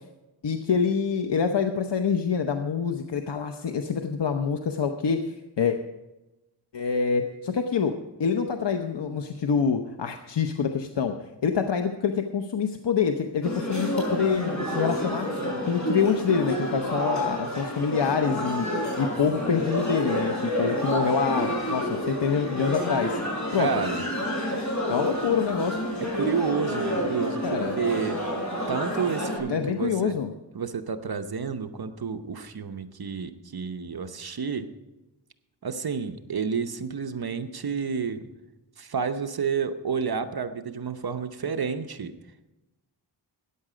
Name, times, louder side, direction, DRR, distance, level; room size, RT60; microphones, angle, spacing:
voice 1, 0.4-5.8 6.7-7.9 8.2-15.3 15.7-18.7 19.0-23.2 23.5-23.7 24.9-25.8 27.4-27.8 29.5-30.3, left 6 dB, 70° left, 6 dB, 0.8 m, -26 dB
sound 1, 13.4-29.4, equal, 40° left, 5.5 m, -29 dB
voice 2, 23.6-24.0 26.1-28.2 28.7-30.2 30.5-34.7 35.6-38.3 38.8-42.1, right 6 dB, 55° right, 8 dB, 0.9 m, -30 dB
14.0 x 9.8 x 5.0 m, 1.0 s
wide cardioid pair, 80°, 44 cm